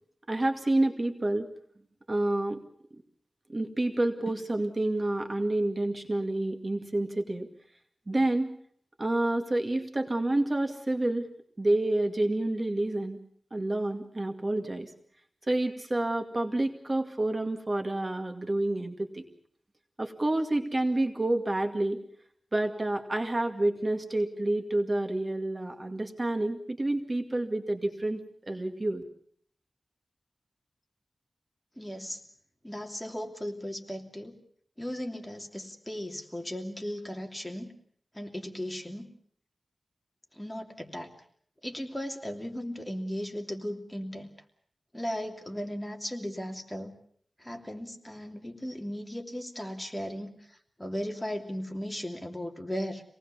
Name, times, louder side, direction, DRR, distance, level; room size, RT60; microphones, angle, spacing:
voice 1, 0.3-1.5 2.1-2.6 3.5-7.5 8.1-8.5 9.0-11.3 11.6-13.2 13.5-14.9 15.5-19.2 20.0-22.0 22.5-29.0, right 1 dB, 35° right, 4 dB, 2.2 m, -29 dB
voice 2, 31.8-32.2 32.6-34.4 34.8-37.7 38.1-39.1 40.3-41.1 41.6-44.3 44.9-46.9 47.4-53.0, equal, 10° left, 3 dB, 3.0 m, -36 dB
26.5 x 19.0 x 7.2 m, 0.62 s
wide cardioid pair, 70°, 0 cm